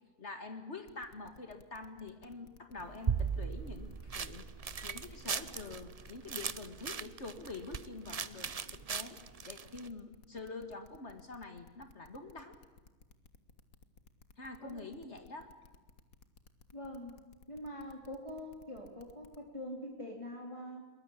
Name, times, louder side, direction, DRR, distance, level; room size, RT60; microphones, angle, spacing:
voice 1, 0.2-4.5 4.8-9.2 9.5-12.6 14.4-15.5, left 3 dB, 55° left, 7 dB, 2.2 m, -46 dB
sound 1, 0.9-19.4, left 4 dB, 90° left, 2.1 m, -59 dB
sound 2, 2.8-9.9, right 6 dB, 35° right, 0.7 m, -38 dB
voice 2, 16.7-17.2 17.5-20.9, left 1 dB, 20° left, 1 dB, 3.4 m, -44 dB
23.0 x 21.0 x 8.6 m, 1.3 s
omnidirectional pair, 1.4 m